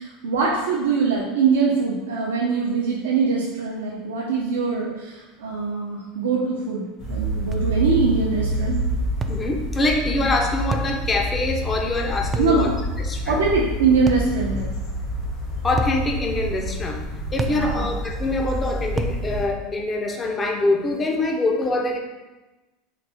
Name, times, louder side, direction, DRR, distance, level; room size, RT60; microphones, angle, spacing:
voice 1, 0.0-8.8 12.4-12.8 13.3-14.7 17.4-17.9, right 5 dB, 90° right, -4 dB, 0.5 m, -23 dB
sound 1, 7.0-19.5, equal, 55° left, 1.2 m, -27 dB
sound 2, 7.5-7.7 9.2-9.4 10.7-11.0 12.3-12.6 14.1-14.3 15.8-16.0 17.4-17.6 19.0-19.2, right 3 dB, 25° right, 0.3 m, -27 dB
voice 2, 9.3-12.7 13.0-13.4 15.6-17.0 17.3-22.0, left 2 dB, 25° left, 2 dB, 0.6 m, -24 dB
3.9 x 2.5 x 3.4 m, 1.1 s
hypercardioid pair, 100°, 0 cm